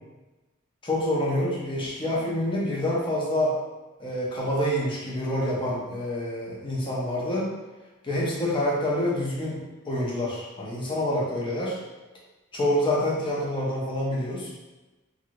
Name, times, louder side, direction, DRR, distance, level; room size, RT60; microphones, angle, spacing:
voice 1, 0.8-3.5 4.0-7.5 8.0-11.8 12.5-14.5, left 1 dB, 25° left, -5 dB, 0.7 m, -27 dB
2.7 x 2.5 x 2.9 m, 1.1 s
head